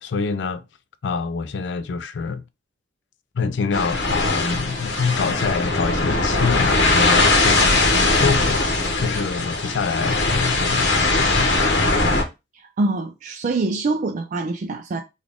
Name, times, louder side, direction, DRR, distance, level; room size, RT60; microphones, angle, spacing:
voice 1, 0.0-0.6 1.0-2.4 3.3-11.5, left 5 dB, 70° left, 0.4 m, -26 dB
sound 1, 3.7-12.2, left 2 dB, 85° left, 1.1 m, -20 dB
voice 2, 12.5-15.0, right 3 dB, 45° right, 0.3 m, -25 dB
3.8 x 2.4 x 3.5 m
head